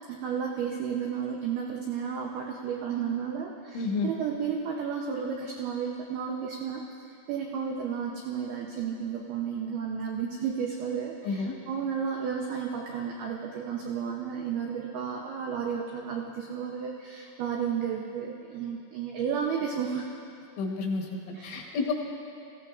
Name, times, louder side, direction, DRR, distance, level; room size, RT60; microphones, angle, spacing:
voice 1, 0.1-6.8 7.3-20.1 21.3-21.8, right 7 dB, 85° right, 0 dB, 2.2 m, -32 dB
voice 2, 3.8-4.1 11.3-11.6 20.6-21.9, left 4 dB, 80° left, 1 dB, 3.6 m, -30 dB
18.5 x 15.0 x 2.4 m, 2.8 s
omnidirectional pair, 5.5 m